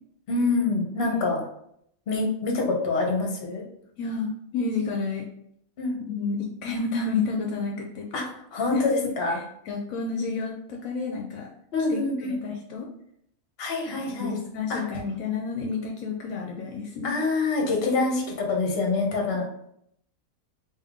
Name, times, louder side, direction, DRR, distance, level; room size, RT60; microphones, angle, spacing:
voice 1, 0.3-1.4 2.1-3.6 5.8-6.0 8.1-8.2 8.5-9.4 11.7-12.4 13.6-14.4 14.7-14.8 17.0-19.5, left 3 dB, 50° left, 0 dB, 1.0 m, -25 dB
voice 2, 4.0-5.3 6.1-8.1 8.7-9.1 9.7-11.5 11.9-12.9 13.9-17.2, left 4 dB, 75° left, 1 dB, 1.0 m, -30 dB
3.5 x 2.9 x 3.5 m, 0.72 s
omnidirectional pair, 1.5 m